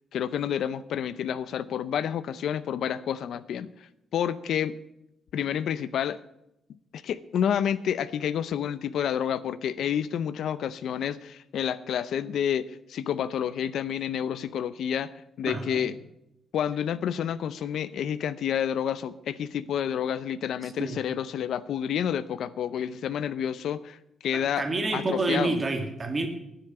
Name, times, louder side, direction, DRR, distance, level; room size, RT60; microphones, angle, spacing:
voice 1, 0.1-3.7 4.1-4.8 5.3-6.2 6.9-15.1 15.4-15.9 16.5-24.0 24.2-24.6 24.9-25.6, left 9 dB, 65° left, 15 dB, 0.5 m, -29 dB
voice 2, 15.5-15.8 20.6-21.0 24.3-26.3, right 2 dB, 25° right, 5 dB, 1.8 m, -29 dB
9.8 x 9.7 x 8.7 m, 0.84 s
cardioid pair, 170°, 0 cm